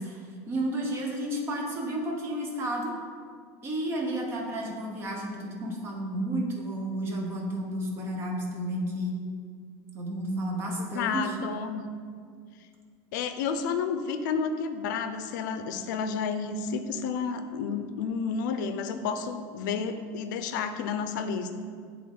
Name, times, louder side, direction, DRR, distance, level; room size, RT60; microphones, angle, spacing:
voice 1, 0.0-2.9 3.6-9.2 9.9-11.4, right 1 dB, 25° right, 0 dB, 0.8 m, -32 dB
voice 2, 10.8-11.8 13.1-21.6, left 5 dB, 90° left, 9 dB, 0.5 m, -31 dB
7.7 x 3.5 x 3.7 m, 2.1 s
cardioid pair, 165°, 10 cm